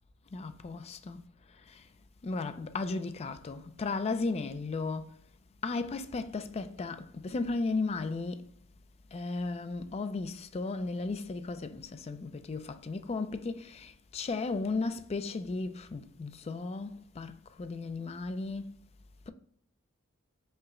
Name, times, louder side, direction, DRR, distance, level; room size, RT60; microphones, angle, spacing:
voice 1, 0.3-1.9 2.2-5.2 5.6-8.5 9.1-18.7, left 3 dB, 30° left, 0.3 m, -35 dB
5.4 x 2.1 x 3.6 m
head